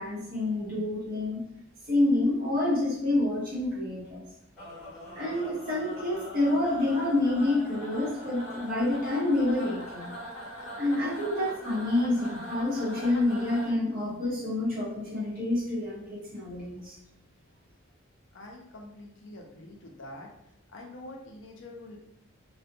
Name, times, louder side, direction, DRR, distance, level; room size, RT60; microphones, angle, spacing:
voice 1, 0.0-1.4 1.9-4.2 5.1-10.1 10.8-17.0, left 2 dB, 45° right, -7 dB, 0.9 m, -28 dB
sound 1, 4.6-13.7, left 1 dB, 5° left, 1.3 m, -42 dB
voice 2, 18.3-20.3 20.7-22.0, left 1 dB, 60° left, 0 dB, 0.5 m, -45 dB
2.5 x 2.1 x 2.6 m, 0.79 s
head